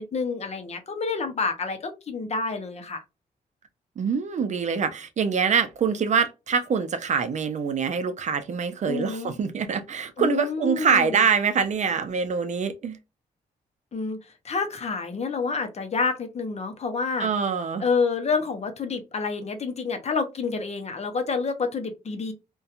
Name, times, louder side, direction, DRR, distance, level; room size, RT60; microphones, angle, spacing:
voice 1, 0.0-3.0 8.9-9.4 10.2-11.2 13.9-14.2 14.4-17.3 17.8-22.3, left 4 dB, 45° left, 0.6 m, -28 dB
voice 2, 4.0-13.0 17.2-17.8, right 6 dB, 50° right, 0.5 m, -25 dB
2.7 x 2.2 x 2.4 m
cardioid pair, 75°, 16 cm